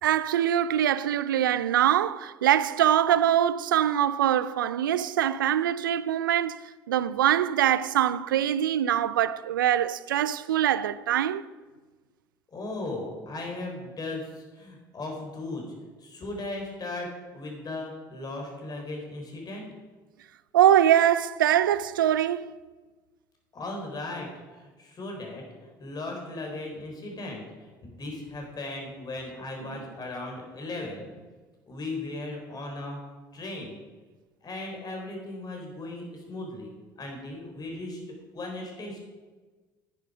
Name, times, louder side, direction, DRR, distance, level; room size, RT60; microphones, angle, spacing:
voice 1, 0.0-11.4 20.5-22.5 29.6-29.8, right 11 dB, 85° right, 0.4 m, -23 dB
voice 2, 12.5-15.6 16.0-19.7 23.5-24.3 24.8-25.4 25.8-27.4 27.8-31.1 31.7-33.0 33.3-33.8 34.4-36.7 37.0-38.0 38.3-39.0, left 2 dB, 40° left, 4.1 m, -37 dB
10.0 x 10.0 x 5.0 m
hypercardioid pair, 60°, 11 cm